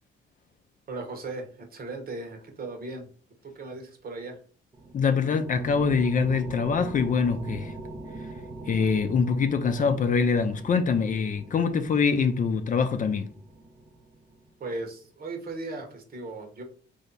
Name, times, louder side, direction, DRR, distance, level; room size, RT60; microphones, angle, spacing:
voice 1, 0.9-3.1 3.4-4.4 14.6-16.6, right 3 dB, 50° right, 1.2 m, -37 dB
sound 1, 4.7-14.5, right 2 dB, 20° right, 0.6 m, -42 dB
voice 2, 4.9-7.7 8.7-13.3, left 5 dB, 40° left, 0.5 m, -24 dB
3.3 x 2.7 x 4.0 m
cardioid pair, 90°, 20 cm